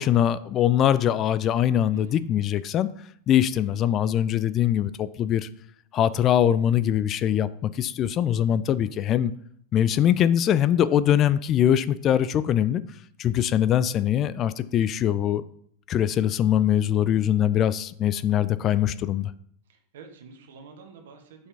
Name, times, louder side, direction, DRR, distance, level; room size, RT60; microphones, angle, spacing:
voice 1, 0.0-2.9 3.3-5.5 5.9-9.3 9.7-12.8 13.2-15.4 15.9-19.3, left 10 dB, 30° left, 15 dB, 0.3 m, -22 dB
voice 2, 1.9-2.3 16.9-17.2 19.7-21.5, right 4 dB, 60° right, 4 dB, 1.4 m, -48 dB
6.9 x 5.6 x 3.5 m, 0.64 s
figure-of-eight pair, 90°, 0 cm